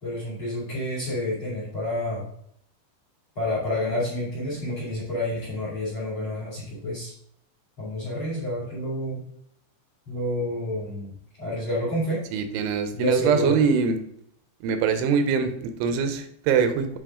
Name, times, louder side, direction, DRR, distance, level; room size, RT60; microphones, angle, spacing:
voice 1, 0.0-2.3 3.4-7.1 7.8-9.2 10.1-12.2 12.9-13.6, left 1 dB, 35° left, -7 dB, 2.5 m, -29 dB
voice 2, 12.3-14.0 14.6-17.0, right 6 dB, 85° right, 8 dB, 3.2 m, -23 dB
9.2 x 5.4 x 3.7 m, 0.69 s
omnidirectional pair, 5.4 m